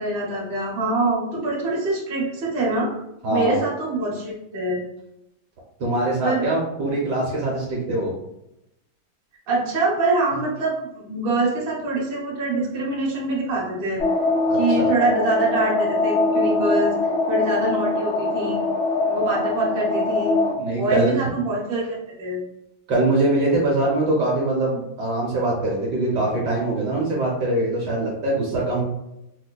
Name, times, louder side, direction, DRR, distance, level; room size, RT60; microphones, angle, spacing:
voice 1, 0.0-2.9 3.3-4.8 6.2-6.5 9.5-14.0 14.5-17.0 17.3-18.6 19.1-20.4 20.7-22.4, right 2 dB, 40° right, -5 dB, 1.0 m, -24 dB
voice 2, 3.2-3.6 5.8-8.1 10.3-10.4 14.5-14.9 20.6-21.2 22.9-28.8, right 2 dB, 65° right, -3 dB, 1.3 m, -23 dB
sound 1, 14.0-20.5, left 2 dB, 55° left, 1.0 m, -22 dB
4.8 x 2.1 x 2.2 m, 0.85 s
omnidirectional pair, 2.1 m